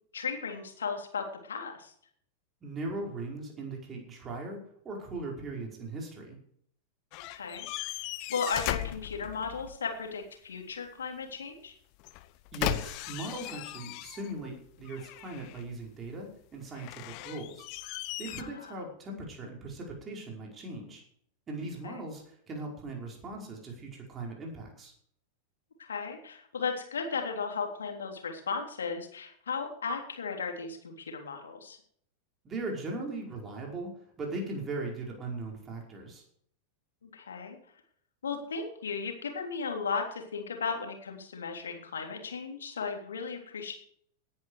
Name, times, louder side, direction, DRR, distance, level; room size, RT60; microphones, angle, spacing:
voice 1, 0.1-1.9 7.3-8.0 8.3-11.7 18.4-18.7 21.8-22.0 25.8-31.8 37.0-37.6 38.2-43.7, left 5 dB, 70° left, 3 dB, 3.5 m, -35 dB
voice 2, 2.6-6.4 12.5-17.7 18.2-21.0 21.5-24.9 32.4-36.2, right 2 dB, 25° right, 0 dB, 5.2 m, -39 dB
creaky wooden door and handle-low, 7.1-9.8 12.0-14.5 14.8-15.7 16.7-18.4, left 17 dB, 45° left, 1.0 m, -37 dB
18.5 x 10.5 x 4.9 m, 0.63 s
figure-of-eight pair, 90°, 0 cm